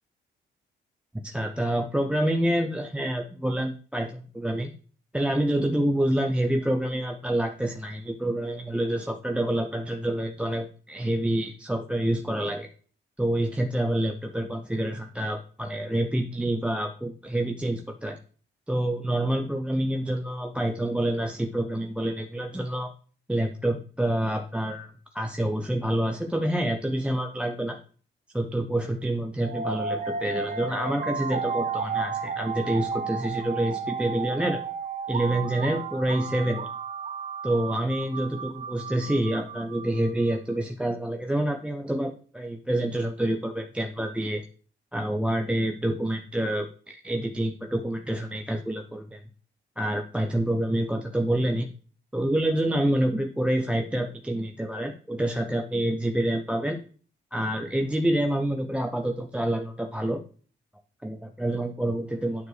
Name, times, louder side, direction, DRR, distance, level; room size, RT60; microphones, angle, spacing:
voice 1, 1.2-4.7 5.1-12.7 13.2-18.2 18.7-22.9 23.3-27.8 28.3-34.6 35.1-36.7 37.4-44.4 44.9-49.2 49.8-51.7 52.1-56.8 57.3-60.2 61.0-62.5, right 1 dB, 5° right, 5 dB, 0.5 m, -27 dB
sound 1, 29.4-40.4, right 5 dB, 45° right, 0.9 m, -33 dB
9.3 x 4.5 x 3.2 m, 0.42 s
cardioid pair, 90°, 20 cm